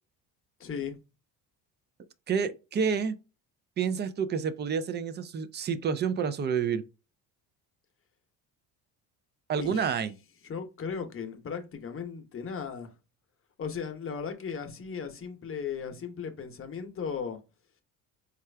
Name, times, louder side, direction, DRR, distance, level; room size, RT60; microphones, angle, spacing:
voice 1, 0.6-1.0 9.6-9.9 10.4-12.9 13.6-17.4, left 6 dB, 35° left, 0.8 m, -36 dB
voice 2, 2.3-3.2 3.8-6.8 9.5-10.1, right 6 dB, 30° right, 0.4 m, -29 dB
4.4 x 2.4 x 3.3 m
cardioid pair, 100°, 39 cm